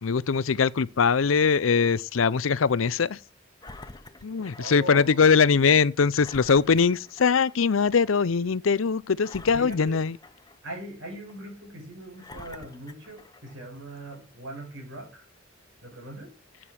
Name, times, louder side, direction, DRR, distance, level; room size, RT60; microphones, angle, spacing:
voice 1, 0.0-3.2 4.2-10.1, left 5 dB, 85° left, 0.6 m, -22 dB
Engine, 3.6-4.9 5.3-5.4 6.2-7.6 8.0-8.1 9.2-10.7 11.3-11.4 12.2-13.6 14.3-14.4, left 2 dB, 20° left, 0.8 m, -47 dB
voice 2, 4.6-5.2 9.4-10.1 10.6-15.3 15.8-16.3, right 1 dB, 75° right, 5.8 m, -40 dB
11.0 x 7.6 x 6.3 m
head